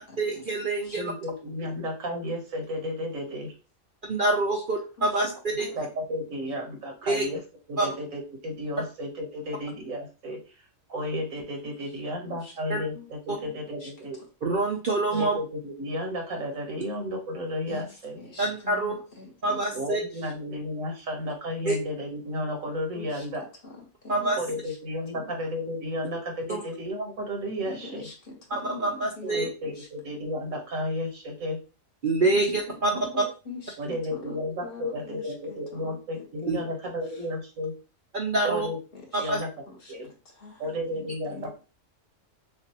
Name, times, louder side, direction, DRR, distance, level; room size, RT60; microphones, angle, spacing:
voice 1, 0.2-1.1 4.1-5.7 7.1-7.3 7.8-7.9 12.7-12.8 13.3-13.4 14.4-15.4 18.4-18.9 19.4-20.0 21.7-21.8 24.1-24.4 26.5-26.6 28.5-29.5 32.0-32.9 36.5-36.6 38.1-38.7 39.1-39.4, right 2 dB, 50° right, 0 dB, 0.7 m, -26 dB
voice 2, 0.9-3.5 5.8-7.4 7.7-10.4 10.9-14.2 15.1-18.2 19.7-23.5 24.4-28.1 29.2-31.6 33.8-37.7 38.4-38.8 39.2-39.5 39.9-40.1 40.6-41.5, left 1 dB, 85° right, 2 dB, 1.7 m, -33 dB
voice 3, 13.3-13.9 14.9-15.2 17.7-19.9 20.1-20.3 22.9-24.8 25.1-25.3 27.6-29.9 32.2-37.3 38.5-38.7 38.9-39.3 39.7-41.5, left 3 dB, 45° left, -2 dB, 1.5 m, -44 dB
6.4 x 2.5 x 2.9 m, 0.34 s
omnidirectional pair, 1.4 m